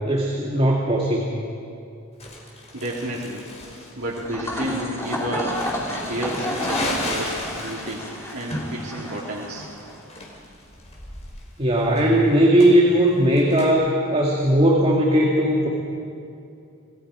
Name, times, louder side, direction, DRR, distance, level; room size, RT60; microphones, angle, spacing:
voice 1, 0.0-1.3 11.6-15.7, right 1 dB, 30° right, -2 dB, 2.1 m, -18 dB
Crumpling crinkling, 2.2-13.7, left 1 dB, 30° left, 4.0 m, -35 dB
voice 2, 2.7-3.5 4.0-5.6 6.0-9.7, right 1 dB, 80° right, -5 dB, 2.6 m, -31 dB
sound 1, 4.2-10.0, left 1 dB, 15° left, 2.8 m, -31 dB
27.0 x 20.0 x 5.0 m, 2.5 s
head